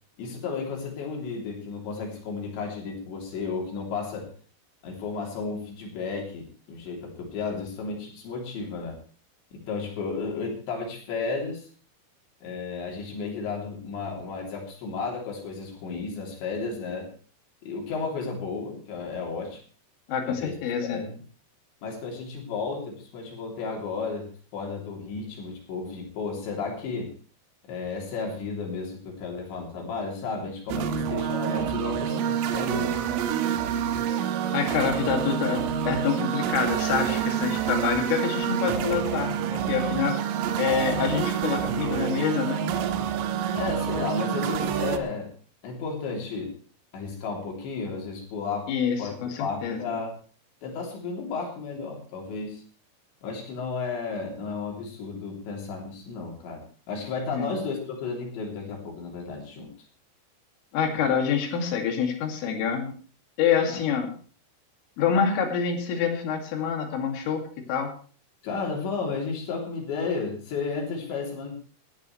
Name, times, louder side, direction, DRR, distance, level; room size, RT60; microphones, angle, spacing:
voice 1, 0.2-4.3 4.8-9.0 9.5-11.7 12.4-17.1 17.6-19.6 20.3-20.6 20.8-21.1 21.8-27.1 27.6-33.0 43.5-45.3 45.6-46.5 46.9-48.7 49.0-50.2 50.6-52.6 53.2-59.7 63.7-63.8 68.4-71.5, left 4 dB, 65° left, 0 dB, 5.5 m, -33 dB
voice 2, 20.1-21.1 34.5-40.2 40.6-42.6 48.7-50.0 57.3-57.5 60.7-62.9 63.4-64.1 65.0-67.4 67.7-67.9, left 7 dB, 85° left, 3 dB, 5.1 m, -27 dB
sound 1, 30.7-45.0, right 8 dB, 90° right, 3.6 m, -27 dB
19.0 x 12.5 x 3.3 m, 0.41 s
omnidirectional pair, 5.7 m